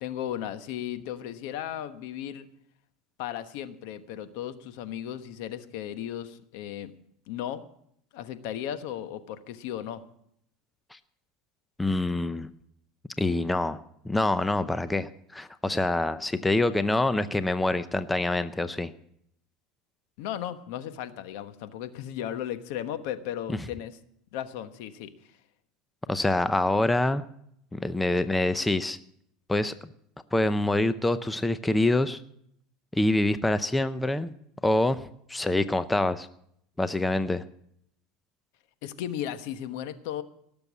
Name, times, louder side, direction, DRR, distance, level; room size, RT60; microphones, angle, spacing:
voice 1, 0.0-2.5 3.2-6.9 7.3-7.6 8.1-10.0 20.2-24.0 24.3-25.1 38.8-40.2, left 11 dB, 70° left, 10 dB, 1.1 m, -35 dB
voice 2, 11.8-12.5 13.2-13.8 14.0-18.9 23.5-23.6 26.1-27.2 27.7-29.0 29.5-29.7 30.3-32.2 32.9-34.3 34.6-36.3 36.8-37.4, left 2 dB, 10° left, 12 dB, 0.6 m, -26 dB
18.0 x 7.0 x 8.2 m, 0.70 s
supercardioid pair, 130°, 0 cm